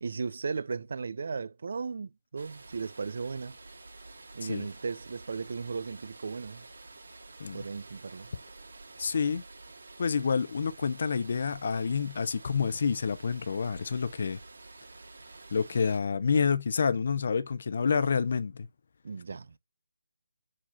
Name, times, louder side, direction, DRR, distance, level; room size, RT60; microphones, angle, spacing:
voice 1, 0.0-3.6 4.3-6.6 7.5-8.3 19.0-19.6, right 5 dB, 50° right, 0.5 m, -36 dB
sound 1, 2.4-16.0, right 3 dB, 65° right, 2.4 m, -50 dB
voice 2, 9.0-9.4 10.0-14.4 15.5-18.7, left 5 dB, 45° left, 0.5 m, -28 dB
4.8 x 4.2 x 5.6 m
hypercardioid pair, 175°, 0 cm